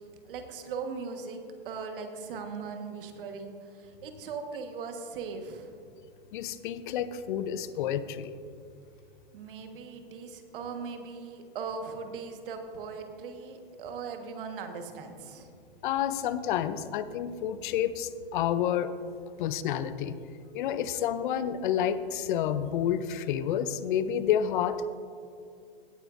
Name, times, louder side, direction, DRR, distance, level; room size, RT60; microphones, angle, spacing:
voice 1, 0.2-5.8 9.3-15.5, right 5 dB, 60° right, 6 dB, 1.3 m, -39 dB
voice 2, 6.3-8.3 15.8-18.9 19.4-20.2 20.5-24.9, left 9 dB, 55° left, 13 dB, 0.6 m, -29 dB
16.5 x 9.0 x 2.5 m, 2.3 s
hypercardioid pair, 120°, 30 cm